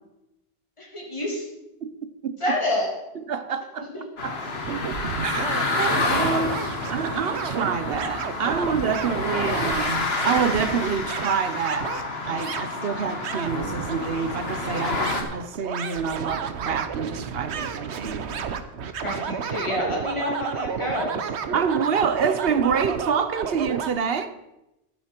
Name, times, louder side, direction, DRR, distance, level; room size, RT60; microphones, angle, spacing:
voice 1, 0.8-1.5 2.4-2.9 3.8-4.0 18.0-18.2 19.0-21.3, left 1 dB, 30° left, 2.9 m, -28 dB
voice 2, 3.3-3.9 4.2-4.4 5.2-5.4 5.8-6.6 6.9-11.9 12.3-18.2 21.5-24.3, right 6 dB, 65° right, 1.0 m, -27 dB
sound 1, 4.2-15.2, left 3 dB, 70° left, 1.7 m, -29 dB
sound 2, 4.6-23.9, right 7 dB, 90° right, 1.1 m, -32 dB
12.0 x 11.0 x 4.5 m
omnidirectional pair, 1.1 m